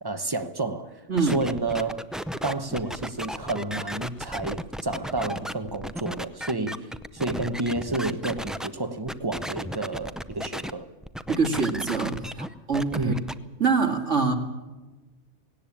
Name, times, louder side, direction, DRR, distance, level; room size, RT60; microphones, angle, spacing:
voice 1, 0.0-0.9 1.2-2.1 2.4-6.9 7.1-10.9 12.9-13.2, right 2 dB, 20° right, 1.0 m, -30 dB
voice 2, 1.1-1.4 11.3-13.1 13.6-14.3, right 4 dB, 75° right, 2.6 m, -25 dB
sound 1, 1.2-8.7 9.1-10.7 11.0-13.3, equal, ahead, 0.3 m, -34 dB
18.0 x 17.5 x 8.6 m
omnidirectional pair, 1.3 m